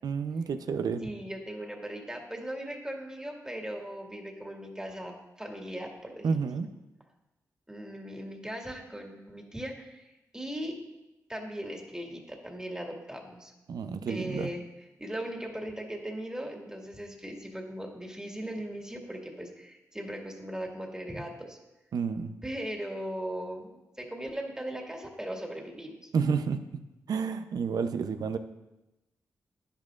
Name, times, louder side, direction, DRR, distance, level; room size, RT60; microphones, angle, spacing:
voice 1, 0.0-1.0 6.2-6.7 13.7-14.5 21.9-22.4 26.1-26.6 27.1-28.4, right 5 dB, 75° right, 9 dB, 0.6 m, -30 dB
voice 2, 1.0-6.4 7.7-10.8 11.3-13.5 14.1-14.6 15.0-21.6 22.4-23.7 24.0-26.1, right 1 dB, 10° right, 0 dB, 1.9 m, -38 dB
10.5 x 10.5 x 2.5 m, 0.98 s
cardioid pair, 55°, 7 cm